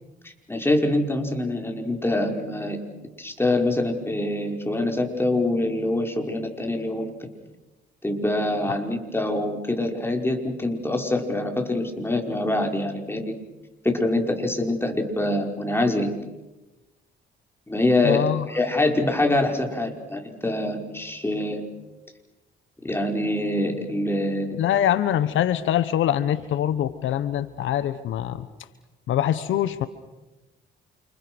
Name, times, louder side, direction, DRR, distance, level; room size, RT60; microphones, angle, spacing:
voice 1, 0.5-2.8 3.2-7.1 8.0-13.3 13.8-16.1 17.7-21.6 22.8-24.6, left 1 dB, 10° left, 3 dB, 5.3 m, -25 dB
voice 2, 18.0-18.4 24.6-28.5 29.1-29.9, left 11 dB, 80° left, 13 dB, 1.2 m, -24 dB
29.5 x 28.0 x 6.3 m, 1.1 s
cardioid pair, 90°, 20 cm